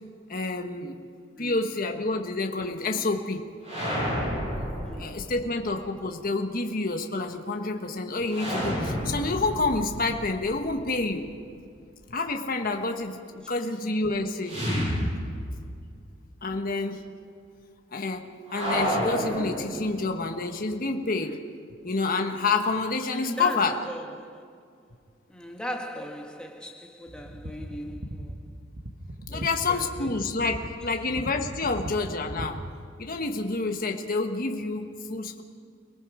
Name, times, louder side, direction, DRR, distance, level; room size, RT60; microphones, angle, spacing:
voice 1, 0.3-1.0 1.4-3.4 4.6-4.7 5.0-11.3 12.1-14.6 16.4-17.1 17.9-18.3 18.5-21.4 21.8-23.8 29.3-32.6 33.0-35.4, left 3 dB, 45° left, 1.4 m, -28 dB
sound 1, 3.6-5.6 8.3-11.3 14.4-15.8 16.1-16.2 18.5-20.2, equal, 30° right, 7.9 m, -30 dB
voice 2, 4.8-5.3 13.5-13.8 16.4-16.5 23.1-24.6 25.3-28.5 29.3-30.3 30.6-30.7, equal, 5° left, 1.7 m, -39 dB
sound 2, 27.1-32.7, right 1 dB, 50° right, 1.6 m, -39 dB
29.5 x 18.5 x 5.0 m
head